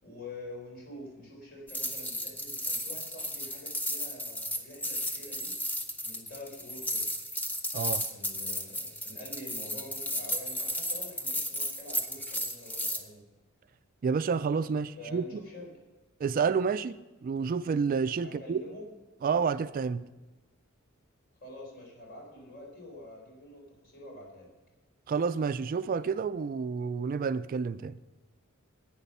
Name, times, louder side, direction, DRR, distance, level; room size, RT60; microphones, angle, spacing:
voice 1, 0.0-5.6 6.0-7.1 8.1-13.2 15.0-15.7 18.2-18.9 21.4-24.5, left 1 dB, 50° left, 4.0 m, -46 dB
sound 1, 1.7-13.0, equal, 10° left, 0.9 m, -34 dB
voice 2, 7.7-8.1 14.0-15.4 16.2-18.6 19.2-20.1 25.1-28.0, right 5 dB, 45° right, 0.3 m, -29 dB
11.5 x 9.1 x 5.5 m
head